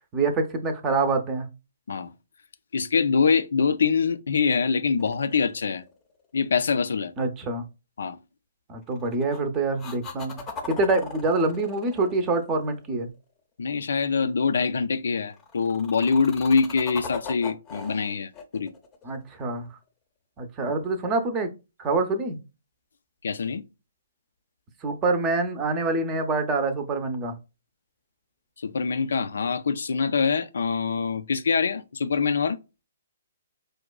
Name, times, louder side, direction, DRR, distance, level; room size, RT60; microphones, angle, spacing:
voice 1, 0.1-1.5 7.2-7.6 8.7-10.4 10.7-13.1 19.0-19.7 20.4-21.5 21.8-22.4 24.8-27.4, right 3 dB, 25° right, 0.6 m, -26 dB
voice 2, 2.7-5.8 6.3-7.1 8.0-8.2 13.6-18.7 23.2-23.6 28.6-32.6, left 5 dB, 65° left, 0.3 m, -24 dB
sound 1, 5.0-6.2 8.9-9.4 9.8-13.1 15.3-19.7 23.4-23.5, left 4 dB, 20° left, 0.6 m, -40 dB
4.8 x 2.2 x 2.2 m
figure-of-eight pair, 130°, 0 cm